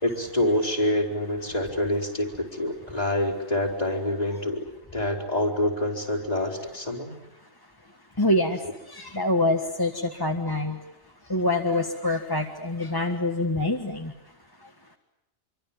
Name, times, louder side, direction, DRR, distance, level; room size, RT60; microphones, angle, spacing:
voice 1, 0.0-4.7 4.9-7.1, left 1 dB, 35° left, 3 dB, 4.3 m, -26 dB
voice 2, 8.2-8.6 8.9-10.8 11.3-14.1, left 1 dB, 20° left, 3 dB, 1.6 m, -25 dB
26.5 x 24.5 x 8.8 m, 0.86 s
omnidirectional pair, 1.2 m